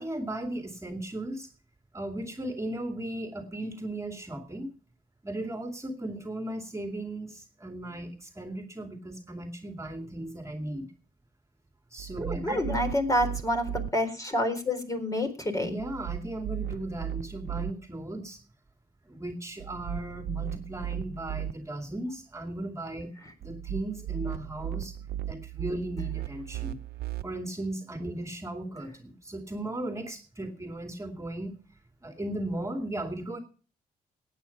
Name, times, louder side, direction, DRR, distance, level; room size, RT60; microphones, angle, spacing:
voice 1, 0.0-1.5 1.9-4.7 5.2-10.9 11.9-12.8 15.6-18.4 19.1-23.1 23.4-24.9 25.2-26.8 27.2-31.5 32.0-33.4, right 1 dB, 20° right, 5 dB, 2.5 m, -36 dB
sound 1, 12.0-13.9 15.8-17.7 19.6-21.5 23.4-27.2, right 11 dB, 85° right, 0.7 m, -36 dB
voice 2, 12.4-15.7, left 1 dB, 20° left, 5 dB, 3.9 m, -28 dB
15.5 x 9.3 x 5.9 m, 0.40 s
cardioid pair, 75°, 16 cm